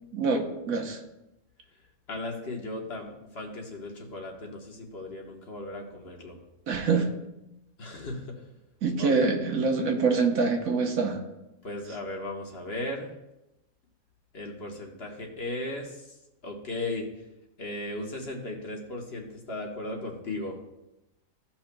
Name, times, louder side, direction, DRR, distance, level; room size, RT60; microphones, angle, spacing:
voice 1, 0.1-1.0 6.7-7.1 8.8-11.2, right 4 dB, 80° right, 3 dB, 1.4 m, -25 dB
voice 2, 2.1-6.4 7.8-8.4 9.0-9.1 11.6-13.1 14.3-16.1 16.4-17.1 17.6-20.6, left 2 dB, 50° left, 1 dB, 1.4 m, -36 dB
15.5 x 5.8 x 2.2 m, 0.92 s
omnidirectional pair, 1.5 m